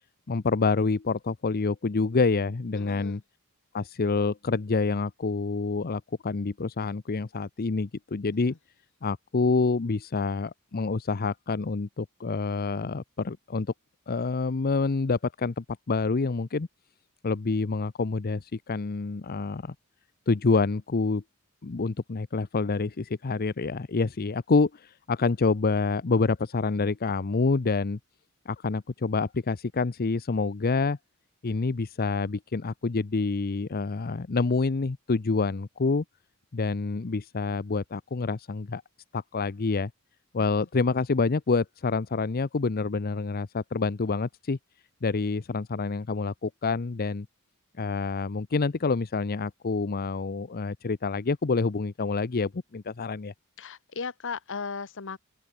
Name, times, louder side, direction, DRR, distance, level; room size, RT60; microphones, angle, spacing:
voice 1, 0.3-3.2 3.7-8.5 9.0-13.7 14.1-16.7 17.2-19.7 20.3-21.2 21.6-28.0 28.5-31.0 31.4-36.0 36.5-38.8 39.1-39.9 40.3-44.6 45.0-47.3 47.8-53.3, left 4 dB, 45° left, 0.6 m, -27 dB
voice 2, 2.7-3.2 53.6-55.2, left 5 dB, 60° left, 1.2 m, -36 dB
open air
head